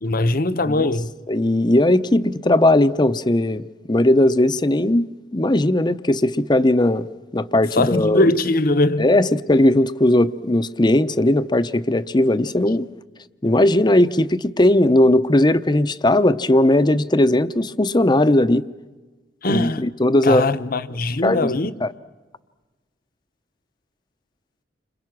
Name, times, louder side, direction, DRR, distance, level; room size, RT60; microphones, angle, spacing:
voice 1, 0.0-1.1 7.8-9.1 19.4-19.8 20.2-21.7, left 2 dB, 50° left, 0.9 m, -21 dB
voice 2, 1.3-7.1 7.3-8.3 9.0-12.9 13.4-18.6 19.5-20.5 21.2-21.9, left 1 dB, 25° left, 0.7 m, -18 dB
29.5 x 26.5 x 6.1 m
head